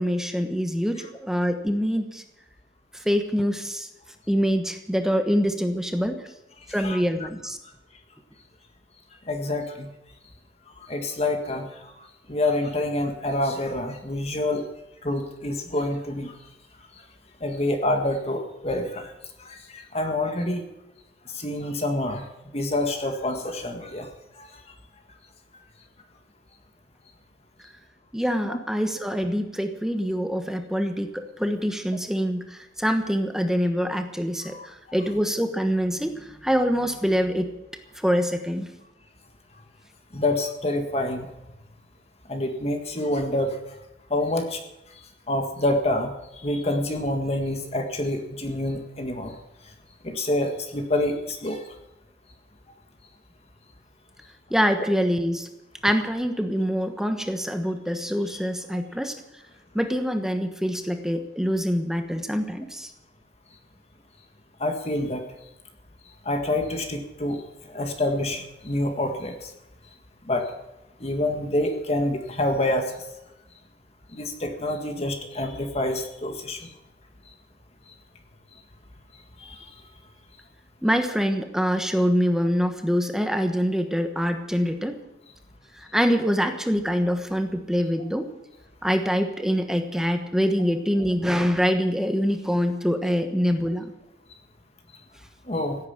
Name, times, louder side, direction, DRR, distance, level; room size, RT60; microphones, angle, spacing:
voice 1, 0.0-2.2 3.0-3.9 4.3-6.2 6.7-7.6 28.1-37.5 38.0-38.7 54.5-55.5 55.8-59.2 59.7-62.9 80.8-85.0 85.9-88.3 88.8-93.9, equal, 5° right, 6 dB, 1.2 m, -25 dB
voice 2, 9.3-9.9 10.9-11.7 12.3-14.6 15.0-16.3 17.4-19.1 19.5-20.6 21.4-22.2 22.5-24.1 28.5-28.6 34.5-34.6 40.1-41.3 42.3-43.5 44.1-44.6 45.3-46.1 46.4-49.3 50.0-51.6 58.3-58.4 64.6-65.2 66.3-67.4 67.7-69.3 70.3-70.5 71.0-72.8 74.1-76.6 95.5-95.8, left 1 dB, 35° left, 4 dB, 1.8 m, -27 dB
16.0 x 9.3 x 8.8 m, 0.93 s
head